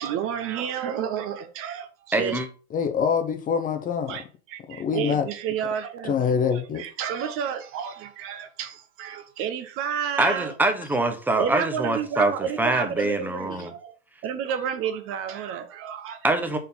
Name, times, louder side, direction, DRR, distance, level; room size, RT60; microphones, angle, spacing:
voice 1, 0.0-2.4 4.1-10.5 11.4-13.9 14.2-16.3, right 8 dB, 40° right, 0.8 m, -31 dB
voice 2, 2.1-2.5 10.2-12.3 12.6-13.7 16.2-16.6, right 2 dB, 5° right, 0.9 m, -24 dB
voice 3, 2.7-4.2 4.7-5.3 6.0-6.8, left 7 dB, 25° left, 0.7 m, -25 dB
4.6 x 3.9 x 5.4 m
supercardioid pair, 130°, 33 cm